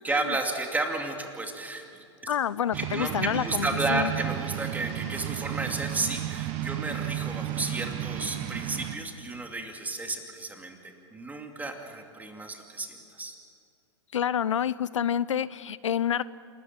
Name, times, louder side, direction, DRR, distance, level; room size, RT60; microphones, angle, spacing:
voice 1, 0.0-2.3 2.7-13.4, right 2 dB, 10° right, 4 dB, 2.5 m, -32 dB
voice 2, 2.3-4.1 14.1-16.2, left 9 dB, 80° left, 19 dB, 0.5 m, -28 dB
sound 1, 2.7-9.0, right 12 dB, 45° right, 1.5 m, -33 dB
28.0 x 13.5 x 8.9 m, 2.5 s
hypercardioid pair, 105°, 16 cm